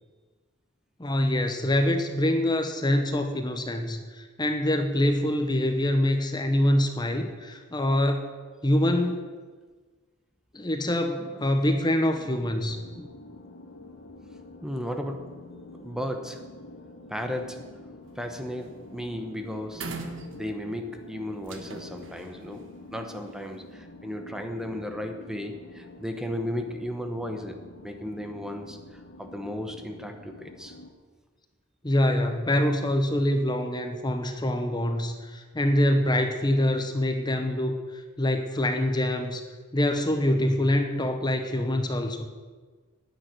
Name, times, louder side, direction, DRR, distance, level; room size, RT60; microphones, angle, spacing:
voice 1, 1.0-8.3 8.6-9.3 10.5-13.1 31.8-39.4 39.7-42.3, left 1 dB, 20° left, 6 dB, 1.0 m, -25 dB
sound 1, 12.1-30.9, left 2 dB, 55° left, 1.9 m, -47 dB
voice 2, 14.6-15.4 15.7-16.5 17.1-17.8 18.2-19.9 20.3-27.6 27.8-30.8, equal, 5° right, 5 dB, 1.0 m, -35 dB
sound 2, 18.0-18.3 18.6-18.9 19.2-19.3 19.7-20.8 21.4-23.5, right 3 dB, 65° right, 1.5 m, -41 dB
10.5 x 9.3 x 9.5 m, 1.4 s
head